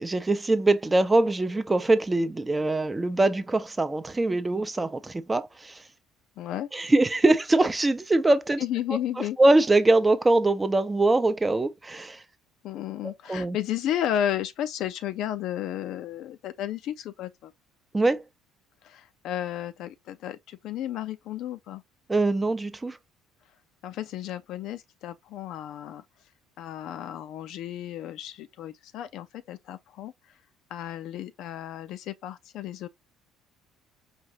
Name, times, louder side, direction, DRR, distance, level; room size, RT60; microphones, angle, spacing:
voice 1, 0.0-5.8 6.7-8.6 9.4-12.2 13.0-13.6 17.9-18.2 22.1-23.0, right 2 dB, 20° right, 0.6 m, -23 dB
voice 2, 6.4-6.7 8.6-9.4 12.6-17.5 18.8-21.8 23.8-26.0 26.6-30.1 30.7-32.9, left 11 dB, 60° left, 0.4 m, -33 dB
5.0 x 2.6 x 2.9 m
figure-of-eight pair, 55°, 0 cm